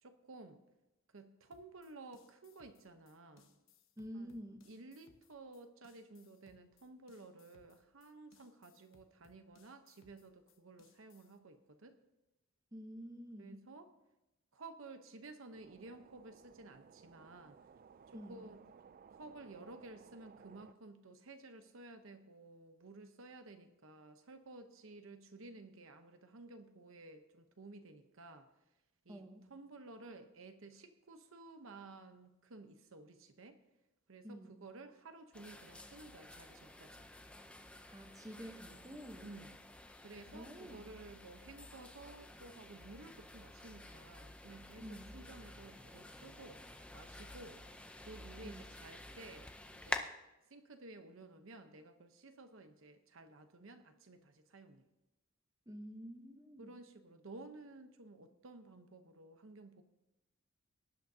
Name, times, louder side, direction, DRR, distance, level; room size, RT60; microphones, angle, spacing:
voice 1, 0.0-0.6 1.1-3.5 4.1-4.4 4.7-12.0 13.4-13.9 14.5-17.6 18.1-18.6 19.1-28.5 29.0-29.2 29.5-33.6 34.1-37.1 39.2-39.5 40.0-44.8 45.1-47.6 48.0-50.1 50.5-54.9 56.6-59.8, right 2 dB, 65° right, 8 dB, 0.9 m, -54 dB
sound 1, 1.5-11.4, left 5 dB, 65° left, 1.0 m, -69 dB
voice 2, 4.0-4.7 12.7-13.7 18.1-18.4 29.1-29.5 34.2-34.6 37.9-39.3 40.3-40.9 44.8-45.2 48.4-48.6 55.7-56.7, equal, 15° right, 4 dB, 0.9 m, -49 dB
sound 2, 15.5-20.7, right 6 dB, 40° right, 0.3 m, -60 dB
sound 3, 35.3-50.0, left 1 dB, 5° left, 0.6 m, -50 dB
18.5 x 10.5 x 2.8 m, 0.97 s
head